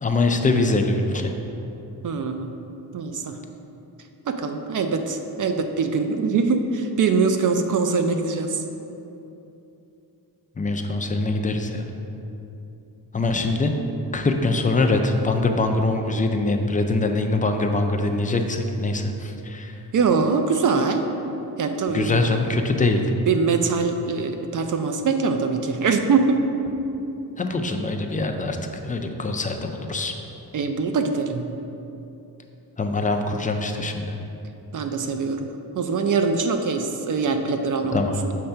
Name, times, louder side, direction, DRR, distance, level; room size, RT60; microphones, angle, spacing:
voice 1, 0.0-1.3 10.6-11.9 13.1-13.7 14.1-19.7 21.9-23.0 27.4-28.6 28.8-30.1 32.8-34.1 37.9-38.1, left 2 dB, 20° left, 4 dB, 0.3 m, -23 dB
voice 2, 2.0-2.5 2.9-3.4 4.3-8.6 19.9-21.1 21.6-22.2 23.3-26.4 30.5-31.5 34.7-35.5 35.8-38.0 38.2-38.3, right 4 dB, 50° right, 6 dB, 0.5 m, -23 dB
6.7 x 3.3 x 5.5 m, 2.9 s
wide cardioid pair, 135°, 41 cm